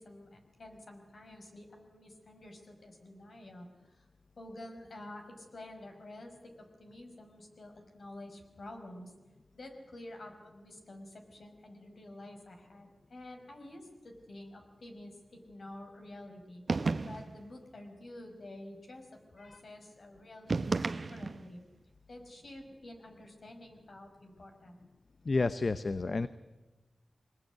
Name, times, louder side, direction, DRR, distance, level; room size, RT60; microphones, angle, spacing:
voice 1, 0.0-4.1 4.4-9.1 9.5-19.1 19.3-21.6 22.1-24.8, left 1 dB, 75° left, 3 dB, 5.4 m, -49 dB
sound 1, 16.7-17.4 20.5-21.5, right 3 dB, 65° right, 0.9 m, -32 dB
voice 2, 25.2-26.3, left 3 dB, 55° left, 12 dB, 0.8 m, -31 dB
23.5 x 20.5 x 9.4 m, 1.2 s
wide cardioid pair, 60°, 0 cm